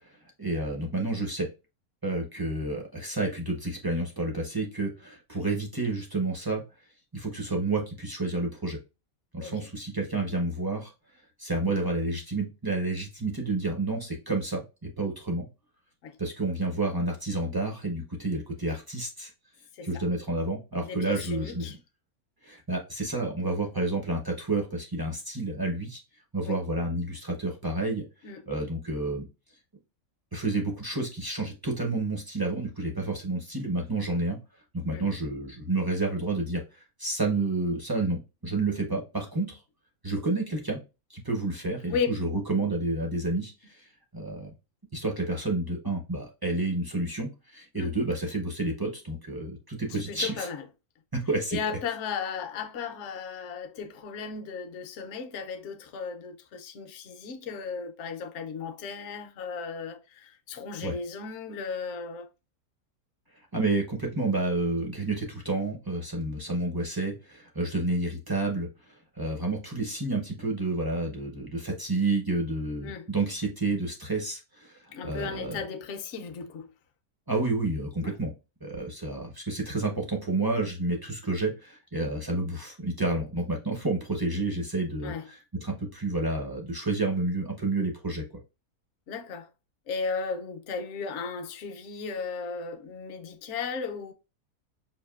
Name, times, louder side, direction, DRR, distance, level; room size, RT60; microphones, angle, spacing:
voice 1, 0.1-1.5 2.0-6.6 7.1-8.8 9.3-10.9 11.4-15.5 16.2-19.3 19.8-21.7 22.4-26.0 26.3-28.0 28.5-29.3 30.3-34.4 34.7-39.6 40.0-40.8 41.1-44.5 44.9-50.5 51.1-51.6 60.8-60.9 63.5-75.6 77.3-78.3 78.6-88.2, right 2 dB, 30° right, 0.4 m, -30 dB
voice 2, 20.8-21.8 26.4-26.6 28.2-28.5 34.9-35.1 41.8-42.1 47.7-48.0 49.9-50.6 51.5-62.3 72.8-73.1 74.9-76.7 78.0-78.1 85.0-85.3 89.1-89.5 89.9-94.1, left 5 dB, 60° left, 0.8 m, -35 dB
5.6 x 2.6 x 2.3 m
omnidirectional pair, 1.6 m